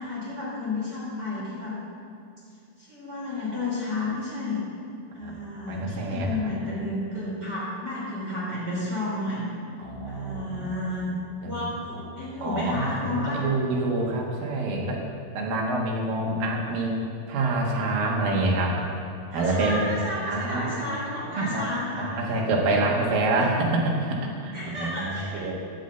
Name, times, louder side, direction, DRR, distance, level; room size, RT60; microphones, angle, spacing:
voice 1, 0.0-1.8 2.8-4.6 5.1-9.4 10.1-11.1 11.4-13.4 16.7-16.8 19.3-22.1 24.5-25.5, left 2 dB, 25° right, -8 dB, 3.5 m, -32 dB
voice 2, 5.7-6.4 9.8-10.7 11.4-11.7 12.4-15.0 15.4-17.0 17.3-18.8 19.3-19.9 20.3-20.8 21.3-21.7 22.0-25.5, right 2 dB, 65° right, -2 dB, 3.3 m, -26 dB
11.0 x 8.5 x 7.9 m, 2.4 s
omnidirectional pair, 4.6 m